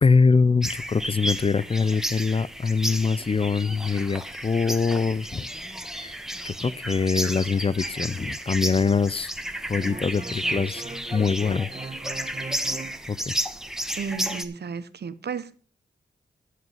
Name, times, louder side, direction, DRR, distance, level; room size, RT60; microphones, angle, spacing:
voice 1, 0.0-5.5 5.9-6.2 6.4-9.3 9.7-10.8 11.1-11.7 13.1-13.3, left 4 dB, 30° left, 0.4 m, -23 dB
sound 1, 0.6-14.4, right 1 dB, 5° right, 1.4 m, -32 dB
sound 2, 1.8-2.0 2.3-2.4 2.9-6.0 7.2-7.7 9.7-13.0, right 3 dB, 30° right, 1.3 m, -41 dB
voice 2, 14.0-15.6, right 6 dB, 65° right, 1.1 m, -33 dB
13.5 x 5.6 x 7.2 m
cardioid pair, 70°, 18 cm